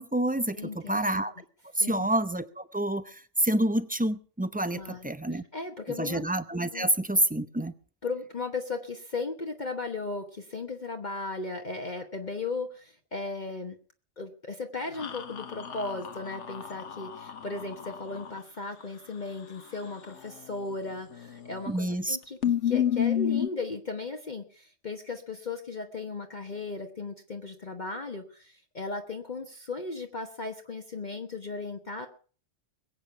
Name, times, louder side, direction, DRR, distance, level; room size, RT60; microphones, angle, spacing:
voice 1, 0.0-1.3 1.8-5.4 6.0-7.7 21.7-22.2, right 1 dB, 10° right, 12 dB, 0.5 m, -28 dB
voice 2, 0.5-1.2 1.8-2.1 4.7-6.2 6.7-6.9 8.0-13.8 14.2-22.4 22.6-32.1, left 3 dB, 40° left, 4 dB, 1.2 m, -36 dB
sound 1, 15.0-18.4 21.1-21.6 21.9-22.0 22.4-23.5, left 10 dB, 70° left, 1.4 m, -30 dB
21.5 x 8.7 x 5.8 m, 0.42 s
omnidirectional pair, 1.3 m